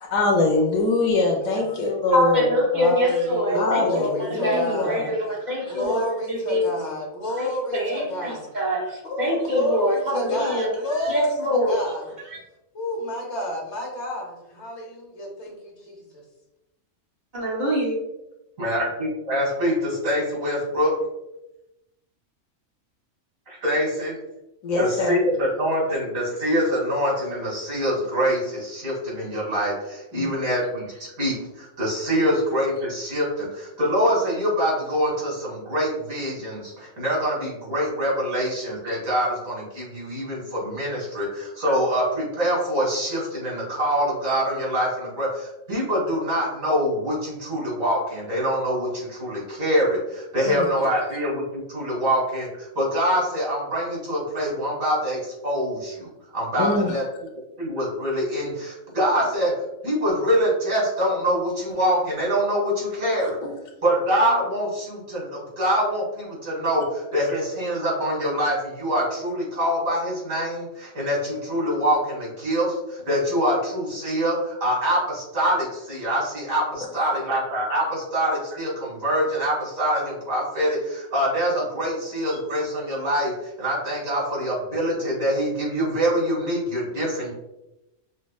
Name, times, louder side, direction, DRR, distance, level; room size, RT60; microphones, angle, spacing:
voice 1, 0.1-2.5 3.5-5.1 24.6-25.2 30.1-30.3 50.4-50.7 56.6-56.9, left 2 dB, 80° left, 0 dB, 1.2 m, -23 dB
voice 2, 2.1-3.9 4.2-6.0 6.3-6.6 7.4-10.7 11.0-11.9 12.3-12.4 17.3-18.0, left 1 dB, 40° right, -4 dB, 0.8 m, -24 dB
voice 3, 2.7-5.0 5.7-8.5 9.0-12.0 12.7-16.2, equal, 60° left, -2 dB, 1.2 m, -30 dB
voice 4, 18.6-20.9 23.5-24.2 24.8-57.0 57.6-59.5 59.8-63.4 63.8-87.3, equal, 75° right, -4 dB, 1.9 m, -25 dB
5.3 x 2.2 x 2.3 m, 0.93 s
omnidirectional pair, 1.4 m